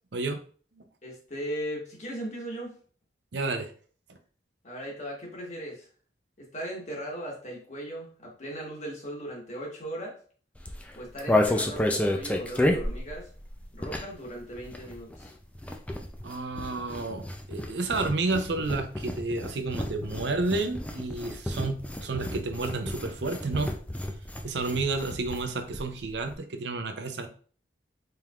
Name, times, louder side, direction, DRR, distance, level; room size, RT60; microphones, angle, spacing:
voice 1, 1.0-2.7 4.6-5.9 6.4-10.2 10.9-13.3 13.7-15.3, right 1 dB, 40° left, -2 dB, 1.4 m, -38 dB
voice 2, 3.3-3.7 16.2-23.7 24.4-27.3, right 3 dB, 70° right, 7 dB, 0.6 m, -31 dB
sound 1, 10.6-14.3 14.5-25.5 25.7-25.8 26.0-26.4, left 1 dB, 10° left, 0.4 m, -31 dB
4.4 x 3.6 x 2.4 m, 0.43 s
head